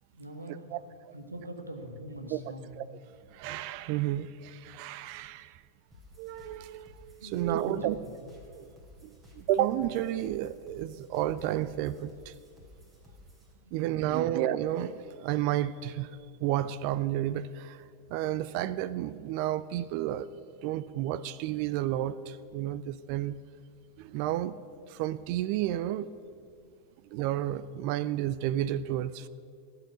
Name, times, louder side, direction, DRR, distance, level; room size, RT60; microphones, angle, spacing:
voice 1, 0.1-0.7 1.1-2.7 7.2-8.1 13.6-14.3, right 1 dB, 80° right, 5 dB, 1.6 m, -42 dB
voice 2, 3.3-5.6 6.2-8.0 8.5-8.7 9.0-12.3 13.7-16.1 16.4-17.8 18.1-20.3 20.6-23.4 24.0-24.6 24.9-26.4 27.1-29.3, right 12 dB, 45° right, 17 dB, 0.4 m, -31 dB
sound 1, 5.9-13.5, left 2 dB, 15° right, 3.0 m, -55 dB
16.5 x 5.7 x 9.5 m, 2.4 s
figure-of-eight pair, 90°, 0 cm